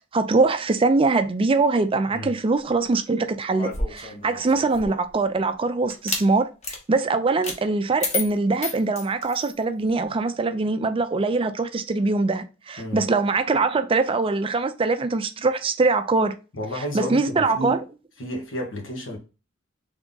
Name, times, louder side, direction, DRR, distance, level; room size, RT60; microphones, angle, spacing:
voice 1, 0.1-6.5 6.9-16.4 16.8-17.8, right 3 dB, 30° right, 0.4 m, -22 dB
sound 1, 3.5-5.1 5.9-6.3 6.6-6.8 7.4-7.6 8.0-9.6, left 3 dB, 35° left, 1.0 m, -30 dB
voice 2, 16.5-17.8 18.2-19.2, equal, 85° left, 1.4 m, -31 dB
3.5 x 3.5 x 3.9 m
head